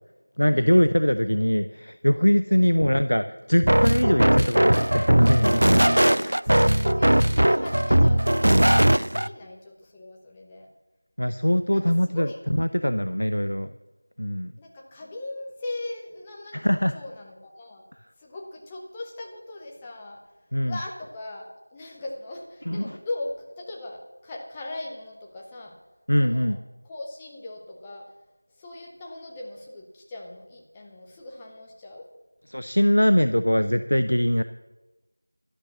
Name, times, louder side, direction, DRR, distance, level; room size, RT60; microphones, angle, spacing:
voice 1, 0.4-5.7 9.1-9.2 11.2-13.7 14.2-14.5 16.5-16.9 20.5-20.8 22.7-23.0 26.1-26.6 32.5-34.4, equal, 65° left, 11 dB, 0.6 m, -22 dB
sound 1, 3.6-9.3, right 1 dB, 55° right, 0.4 m, -19 dB
voice 2, 5.7-10.7 11.7-12.4 14.6-17.9 18.2-20.2 20.6-25.8 26.2-26.6 26.8-28.1 28.6-32.1, left 2 dB, 5° left, -1 dB, 0.6 m, -39 dB
11.5 x 11.0 x 7.0 m, 1.1 s
figure-of-eight pair, 175°, 0 cm